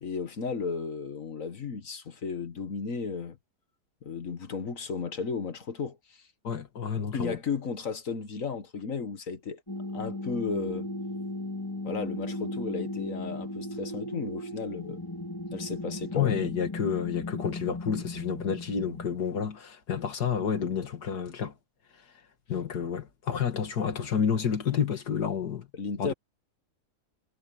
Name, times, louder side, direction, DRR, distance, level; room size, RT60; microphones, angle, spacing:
voice 1, 0.0-3.4 4.0-6.2 7.1-9.6 9.9-10.9 11.8-15.0 15.5-16.4 25.7-26.1, left 5 dB, 55° left, 1.7 m, -34 dB
voice 2, 6.4-7.4 16.1-21.5 22.5-25.7 26.0-26.1, left 7 dB, 75° left, 2.5 m, -30 dB
sound 1, 9.7-19.1, left 1 dB, 15° left, 2.2 m, -36 dB
omnidirectional pair, 1.7 m